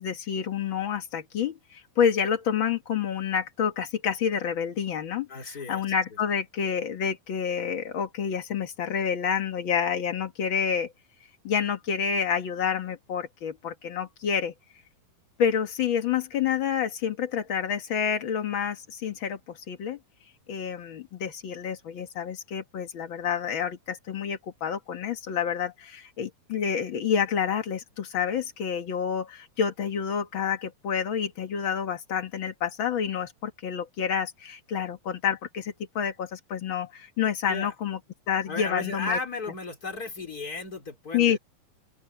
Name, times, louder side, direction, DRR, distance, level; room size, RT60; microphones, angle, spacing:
voice 1, 0.0-10.9 11.4-14.5 15.4-20.0 20.5-38.0 38.3-39.2 41.1-41.4, left 7 dB, 60° left, 1.3 m, -28 dB
voice 2, 5.3-5.8 37.5-37.7 38.5-41.4, left 3 dB, 25° left, 3.7 m, -34 dB
open air
omnidirectional pair, 4.4 m